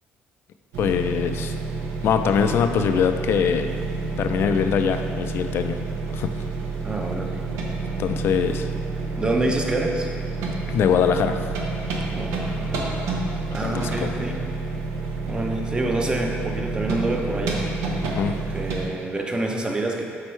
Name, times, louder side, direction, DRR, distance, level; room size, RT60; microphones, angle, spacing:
sound 1, 0.7-18.9, right 3 dB, 90° right, 0.8 m, -29 dB
voice 1, 0.8-1.5 2.0-3.7 4.2-5.8 6.1-6.3 8.0-8.7 10.7-11.4 13.6-14.1 18.1-18.4, left 7 dB, 60° left, 7 dB, 0.4 m, -22 dB
voice 2, 6.8-7.4 9.2-10.1 12.1-12.8 13.5-14.4 15.3-17.7 18.5-20.0, right 2 dB, 20° right, 1 dB, 0.7 m, -27 dB
7.5 x 4.4 x 3.2 m, 2.2 s
cardioid pair, 105°, 5 cm